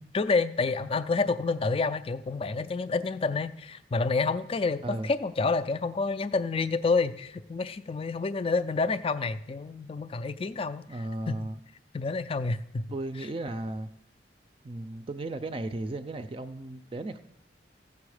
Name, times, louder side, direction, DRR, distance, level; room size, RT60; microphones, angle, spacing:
voice 1, 0.0-11.4 11.9-12.9, left 4 dB, 30° left, 13 dB, 0.4 m, -29 dB
voice 2, 10.9-11.6 12.9-13.9 14.6-17.2, right 2 dB, 30° right, 10 dB, 0.4 m, -35 dB
15.0 x 6.9 x 4.9 m, 0.78 s
head